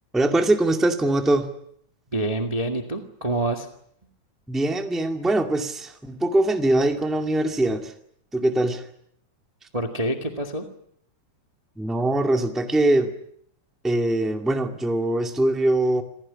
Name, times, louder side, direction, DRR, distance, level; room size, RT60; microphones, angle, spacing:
voice 1, 0.1-1.5 4.5-7.9 8.3-8.8 11.8-13.1 13.8-16.0, right 1 dB, ahead, 5 dB, 1.6 m, -22 dB
voice 2, 2.1-3.7 9.7-10.6, right 1 dB, 15° right, 5 dB, 1.5 m, -26 dB
27.0 x 16.5 x 10.0 m, 0.70 s
omnidirectional pair, 3.4 m